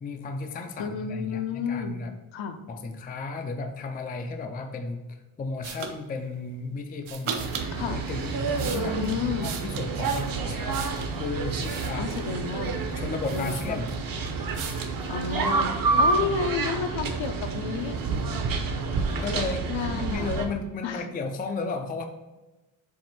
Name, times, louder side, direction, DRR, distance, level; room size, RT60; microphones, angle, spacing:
voice 1, 0.0-2.1 2.7-7.5 7.9-9.1 9.4-10.7 11.2-12.1 13.0-14.0 16.2-16.3 19.1-22.0, left 4 dB, 20° left, 5 dB, 0.4 m, -34 dB
voice 2, 0.8-2.0 2.3-2.6 7.7-8.0 8.7-9.5 12.0-12.9 13.3-13.8 15.1-18.0 19.7-20.3 20.8-21.0, left 6 dB, 70° left, 7 dB, 0.8 m, -31 dB
sound 1, 5.6-5.9 7.0-7.7 8.3-11.1 11.6-12.4 12.9-13.0 13.2-14.1 14.5-15.0, right 6 dB, 85° right, 0.9 m, -37 dB
sound 2, 7.4-20.5, right 4 dB, 45° right, 0.8 m, -29 dB
7.4 x 2.6 x 5.8 m, 1.1 s
wide cardioid pair, 180°, 47 cm